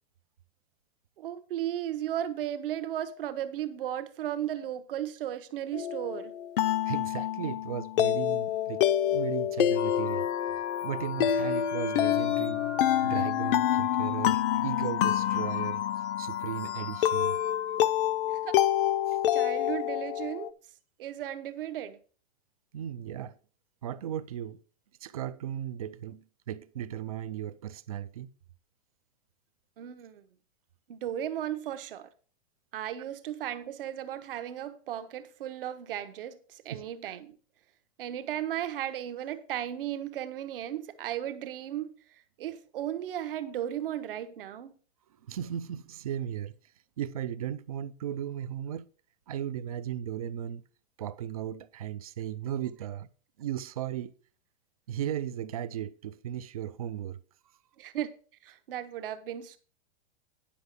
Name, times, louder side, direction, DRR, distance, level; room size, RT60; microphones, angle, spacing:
voice 1, 1.2-6.3 18.4-18.5 19.3-20.5 21.0-22.0 29.8-30.2 30.9-32.1 32.7-37.4 38.0-41.9 42.4-44.7 57.8-58.1 58.4-59.6, right 11 dB, 55° right, 1.1 m, -35 dB
sound 1, 5.7-20.5, left 11 dB, 50° left, 0.6 m, -28 dB
voice 2, 6.8-10.3 10.8-12.7 13.0-17.4 19.1-19.2 22.7-23.4 23.8-24.6 25.0-28.3 36.7-36.8 45.2-46.5 47.0-48.9 49.3-50.6 51.0-53.1 53.4-54.1 54.9-57.2, right 10 dB, 35° right, 0.4 m, -36 dB
sound 2, 9.8-17.7, left 10 dB, 75° left, 1.1 m, -37 dB
10.0 x 5.8 x 5.2 m
supercardioid pair, 175°, 34 cm